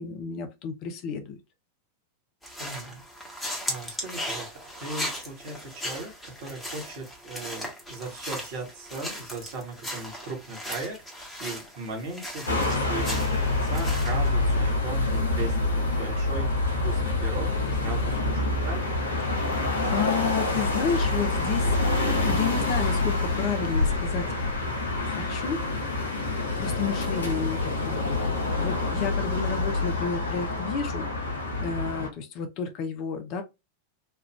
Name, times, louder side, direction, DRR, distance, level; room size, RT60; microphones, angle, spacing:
voice 1, 0.0-1.4 19.3-21.8 22.3-24.3 25.0-25.6 26.3-28.1 28.6-31.1 31.6-33.4, left 6 dB, 40° left, 0.6 m, -31 dB
sound 1, 2.4-14.3, equal, 5° left, 1.2 m, -37 dB
voice 2, 2.6-3.0 3.7-19.0, right 3 dB, 50° right, 1.3 m, -38 dB
sound 2, 12.5-32.1, left 2 dB, 75° left, 0.8 m, -26 dB
3.3 x 2.4 x 3.0 m
figure-of-eight pair, 90°, 0 cm